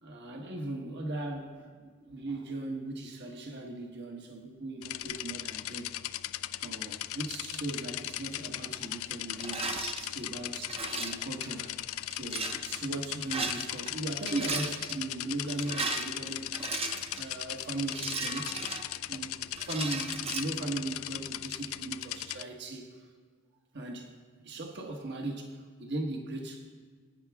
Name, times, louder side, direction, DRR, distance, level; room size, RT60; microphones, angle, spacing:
voice 1, 0.0-5.9 6.6-11.8 12.1-16.5 17.2-18.5 19.1-22.9 23.7-24.1 24.4-26.6, right 2 dB, 50° right, 2 dB, 1.4 m, -38 dB
sound 1, 4.8-22.4, left 14 dB, 65° left, 0.4 m, -38 dB
Rattle, 9.4-10.0 10.6-11.3 12.1-12.6 13.2-13.9 14.2-14.9 15.5-17.3 17.9-19.2 19.6-20.4, right 3 dB, 25° right, 0.9 m, -36 dB
25.0 x 9.5 x 3.6 m, 1.5 s
head